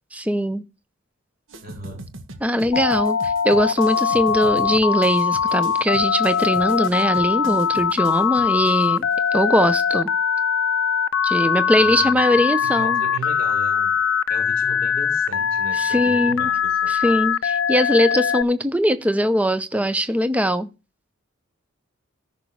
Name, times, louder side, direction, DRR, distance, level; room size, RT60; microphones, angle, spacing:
voice 1, 0.1-0.6 2.4-9.1 9.3-10.1 11.2-13.0 15.7-16.5 16.9-17.4 17.7-20.7, equal, 5° right, 0.6 m, -21 dB
sound 1, 1.5-9.1, right 1 dB, 65° right, 1.5 m, -40 dB
voice 2, 1.6-2.2 11.7-13.9 14.3-17.2, right 3 dB, 45° right, 4.4 m, -37 dB
Telephone, 2.7-18.4, left 7 dB, 65° left, 0.5 m, -21 dB
14.0 x 6.0 x 4.7 m
head